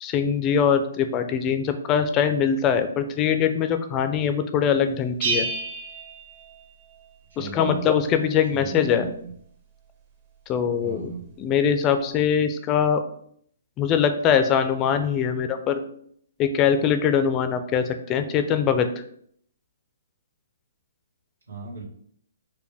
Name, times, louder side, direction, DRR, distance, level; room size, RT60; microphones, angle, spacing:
voice 1, 0.0-5.5 7.4-9.1 10.5-11.1 11.4-13.0 13.8-15.8 16.4-18.9, left 7 dB, 25° left, 8 dB, 0.4 m, -22 dB
Bell, 5.2-7.0, right 3 dB, 40° right, 0.8 m, -29 dB
voice 2, 7.3-7.9 8.5-9.3 10.8-11.3 21.5-21.8, right 4 dB, 85° right, -3 dB, 1.5 m, -36 dB
4.8 x 2.2 x 3.4 m, 0.65 s
hypercardioid pair, 140°, 0 cm